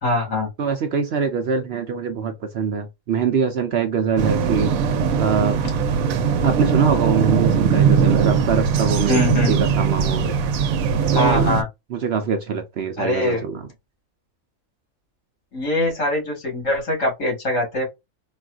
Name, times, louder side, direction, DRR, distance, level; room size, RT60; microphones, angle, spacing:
voice 1, 0.0-0.5 9.1-9.6 11.2-11.7 13.0-13.4 15.5-17.9, left 2 dB, 70° left, 2.3 m, -22 dB
voice 2, 0.6-4.7 5.2-5.6 6.4-9.2 9.5-10.4 11.1-11.5 11.9-13.7, right 6 dB, 60° right, 0.7 m, -23 dB
sound 1, 4.2-11.6, right 6 dB, 85° right, 1.0 m, -20 dB
4.0 x 2.4 x 2.4 m
omnidirectional pair, 1.4 m